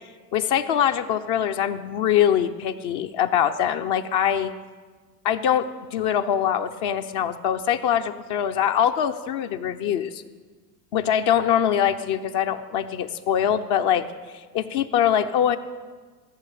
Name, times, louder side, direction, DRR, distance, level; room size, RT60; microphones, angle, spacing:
voice 1, 0.3-4.5 5.2-5.7 5.9-10.2 10.9-14.1 14.5-15.6, left 9 dB, 55° left, 7 dB, 0.9 m, -23 dB
16.0 x 6.9 x 8.3 m, 1.4 s
hypercardioid pair, 85°, 49 cm